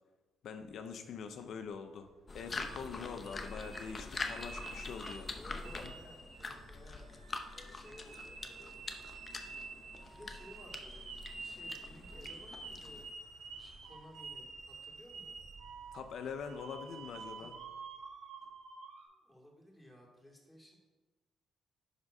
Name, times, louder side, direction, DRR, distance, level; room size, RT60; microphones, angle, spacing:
voice 1, 0.4-2.1 2.3-5.3 5.8-5.9 15.9-17.5, left 6 dB, 70° left, 7 dB, 0.6 m, -44 dB
sound 1, 0.6-18.8, right 3 dB, 55° right, 2.6 m, -63 dB
sound 2, 2.3-13.1, left 3 dB, 35° left, 0.8 m, -45 dB
sound 3, 2.6-5.3 5.6-19.0, right 4 dB, 80° right, 1.5 m, -49 dB
voice 2, 5.3-7.1 7.7-9.0 10.0-15.4 17.4-17.5 19.1-20.7, equal, 5° left, -1 dB, 2.4 m, -57 dB
10.0 x 3.6 x 5.3 m, 1.2 s
cardioid pair, 90°, 0 cm